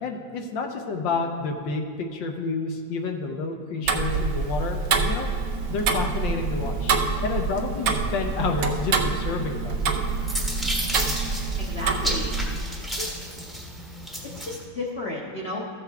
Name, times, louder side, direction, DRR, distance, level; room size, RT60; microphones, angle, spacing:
voice 1, 0.0-5.3 5.7-6.9 7.2-9.9, left 4 dB, 75° left, 3 dB, 1.4 m, -29 dB
Tick-tock, 3.8-12.6, right 4 dB, 65° right, 0.9 m, -26 dB
sound 1, 9.8-14.6, equal, ahead, 0.8 m, -32 dB
voice 2, 11.6-12.3 12.8-13.1 14.2-15.6, left 2 dB, 45° left, -4 dB, 1.0 m, -33 dB
14.0 x 7.1 x 3.4 m, 2.3 s
omnidirectional pair, 2.1 m